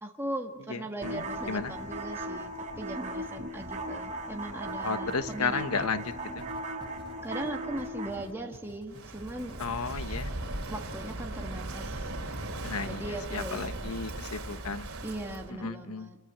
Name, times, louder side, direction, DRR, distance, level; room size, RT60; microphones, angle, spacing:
voice 1, 0.0-2.5 2.8-5.9 7.2-9.6 10.7-12.1 12.9-13.9 15.0-16.2, right 1 dB, 10° right, 1 dB, 1.6 m, -39 dB
voice 2, 0.7-1.7 4.8-6.4 9.6-10.3 12.6-14.9 15.5-16.1, left 4 dB, 80° left, 10 dB, 1.2 m, -34 dB
sound 1, 1.0-8.2, right 1 dB, 35° right, 4.1 m, -37 dB
sound 2, 4.7-9.6 9.9-11.0 11.2-11.3, left 1 dB, 20° left, 1.2 m, -51 dB
Walk footsteps / Wind / Waves surf, 8.9-15.5, right 2 dB, 60° right, 4.0 m, -38 dB
28.5 x 24.0 x 8.2 m, 1.2 s
head